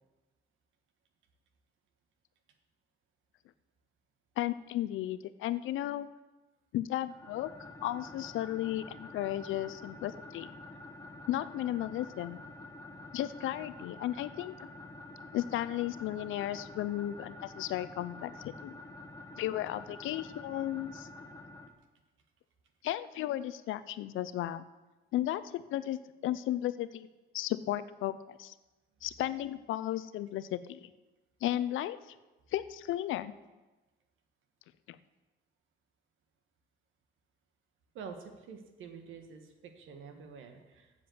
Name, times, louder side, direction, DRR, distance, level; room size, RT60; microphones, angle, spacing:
voice 1, 4.4-6.1 6.7-7.5 7.8-10.5 11.3-12.4 13.1-14.5 15.3-18.7 19.4-21.1 22.8-24.6 25.1-27.1 27.3-28.5 29.0-30.9 31.4-32.0 32.5-33.3 34.9-35.0, left 13 dB, 85° left, 15 dB, 0.6 m, -34 dB
sound 1, 7.1-21.7, left 2 dB, 20° left, 1.3 m, -48 dB
voice 2, 37.9-40.9, right 6 dB, 80° right, 6 dB, 1.5 m, -47 dB
7.6 x 7.6 x 7.7 m, 1.1 s
cardioid pair, 90°, 20 cm